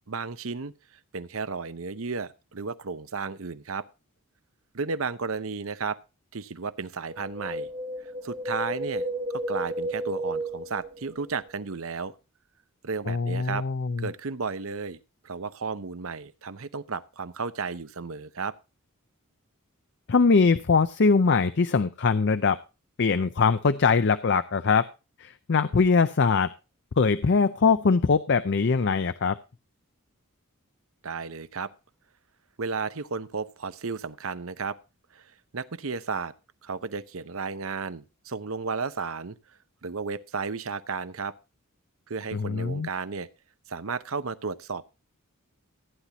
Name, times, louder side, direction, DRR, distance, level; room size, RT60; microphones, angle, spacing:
voice 1, 0.1-0.7 1.1-3.8 4.7-6.0 6.3-7.7 8.2-12.1 12.8-13.6 14.0-15.0 15.2-18.5 31.0-31.7 32.6-34.8 35.1-36.3 36.6-39.3 39.8-41.3 42.1-43.3 43.7-44.8, right 4 dB, 65° right, 14 dB, 0.8 m, -33 dB
Wind, 7.1-11.5 11.7-11.8, right 1 dB, 25° right, 1.2 m, -33 dB
voice 2, 13.1-14.1 20.1-22.6 23.0-24.9 25.2-26.5 27.0-29.4 42.3-42.9, left 4 dB, 50° left, 12 dB, 0.5 m, -22 dB
15.5 x 9.9 x 2.9 m, 0.29 s
head